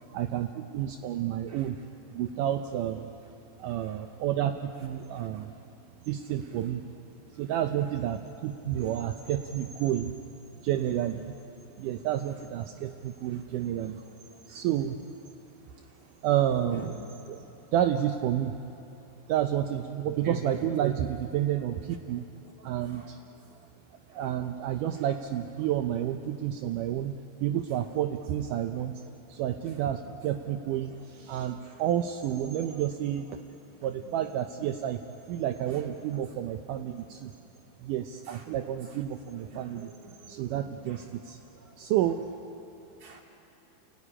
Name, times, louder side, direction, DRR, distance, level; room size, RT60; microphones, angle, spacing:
voice 1, 0.1-1.8 2.1-3.1 3.6-5.6 6.0-6.9 7.3-10.1 10.6-11.3 11.8-14.0 14.5-15.1 16.2-16.9 17.3-17.5 17.7-18.5 19.3-22.3 22.6-23.2 24.1-27.1 27.4-28.9 29.3-33.4 33.8-35.0 35.3-37.3 37.8-39.9 40.3-41.4 41.8-42.4, right 11 dB, 75° right, 6 dB, 2.0 m, -30 dB
voice 2, 3.6-4.0 5.2-5.4 11.7-12.1 13.3-13.4 14.1-14.2 14.5-14.6 15.7-16.0 16.7-16.9 20.0-20.5 22.6-23.4 24.1-24.2 25.0-25.1 29.7-29.8 30.6-31.3 31.6-31.8 32.6-32.8 33.4-34.2 35.7-35.8 36.9-37.0 38.2-38.4 39.4-41.0 41.6-41.7 43.0-43.2, right 4 dB, 35° right, 0 dB, 3.3 m, -48 dB
28.0 x 18.0 x 10.0 m, 2.8 s
omnidirectional pair, 4.4 m